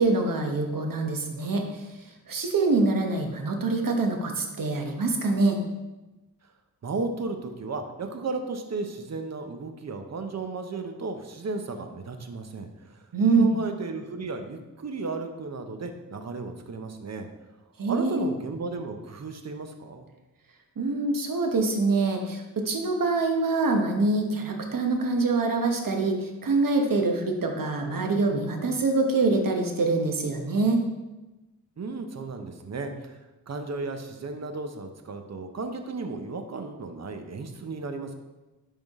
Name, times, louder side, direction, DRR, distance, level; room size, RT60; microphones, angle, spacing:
voice 1, 0.0-1.6 2.3-5.6 13.1-13.5 17.8-18.2 20.8-30.8, right 3 dB, 65° right, 3 dB, 1.1 m, -25 dB
voice 2, 6.8-13.0 13.4-17.3 17.9-20.1 31.8-33.2 33.5-38.1, right 3 dB, 45° right, 6 dB, 0.8 m, -34 dB
10.5 x 3.7 x 3.6 m, 1.1 s
wide cardioid pair, 90°, 36 cm